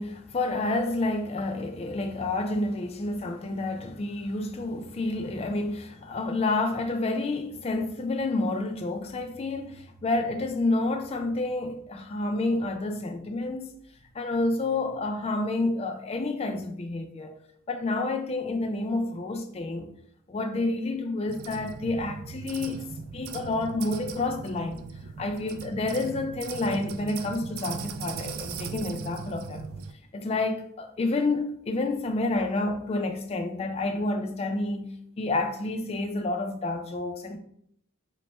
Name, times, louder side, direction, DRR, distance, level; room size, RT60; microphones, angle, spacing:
voice 1, 0.0-13.8 14.1-17.4 17.7-19.9 20.3-24.8 25.2-29.6 30.1-37.4, left 2 dB, 30° left, 0.4 m, -29 dB
sound 1, 21.3-29.9, right 5 dB, 75° right, 0.3 m, -39 dB
4.1 x 2.1 x 3.1 m
head